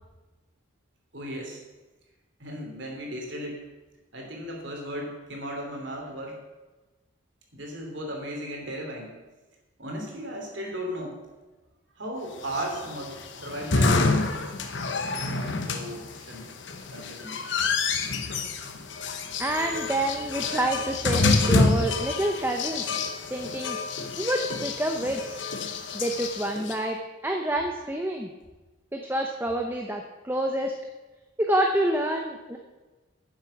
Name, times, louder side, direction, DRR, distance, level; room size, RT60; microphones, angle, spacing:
voice 1, 1.1-1.6 2.4-3.6 4.1-6.4 7.5-9.1 9.8-11.2 12.0-14.0 15.3-16.5 16.9-17.3, equal, 55° right, 1 dB, 3.1 m, -36 dB
sound 1, 12.4-26.7, left 3 dB, 55° left, 1.1 m, -28 dB
voice 2, 19.4-22.9 23.3-23.8 24.2-25.4 25.9-27.0 27.2-28.3 28.9-30.7 31.4-32.6, right 1 dB, 10° right, 2 dB, 0.7 m, -27 dB
10.5 x 7.4 x 7.2 m, 1.2 s
head